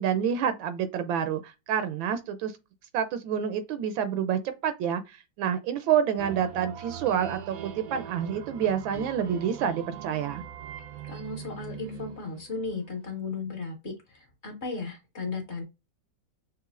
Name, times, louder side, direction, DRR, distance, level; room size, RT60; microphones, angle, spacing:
voice 1, 0.0-1.4 1.7-2.5 2.9-5.0 5.4-10.4, right 8 dB, 85° right, 1.4 m, -28 dB
sound 1, 6.2-12.8, right 10 dB, 65° right, 0.9 m, -41 dB
voice 2, 11.0-15.6, left 4 dB, 40° left, 1.4 m, -35 dB
6.0 x 3.1 x 2.4 m
omnidirectional pair, 2.1 m